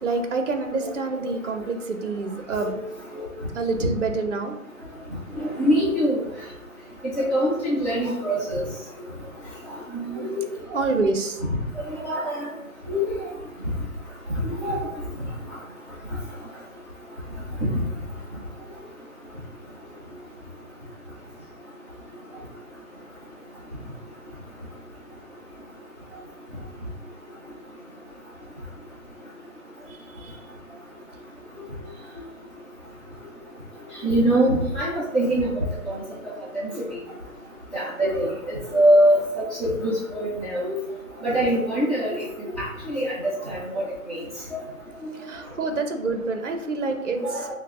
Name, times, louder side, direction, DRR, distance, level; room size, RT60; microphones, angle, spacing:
voice 1, 0.0-2.8 3.5-4.5 10.7-11.4 29.9-30.4 45.1-47.5, right 3 dB, 60° right, 6 dB, 0.5 m, -27 dB
voice 2, 5.3-6.2 7.2-8.6 9.9-10.4 11.7-12.4 12.9-13.1 14.4-14.8 17.7-17.8 34.0-36.0 36.8-36.9 37.7-39.2 39.6-40.8 41.2-43.8 44.1-44.2 44.5-44.6 47.2-47.5, equal, 30° left, -12 dB, 0.8 m, -23 dB
6.0 x 2.0 x 2.5 m, 0.89 s
figure-of-eight pair, 180°, 43 cm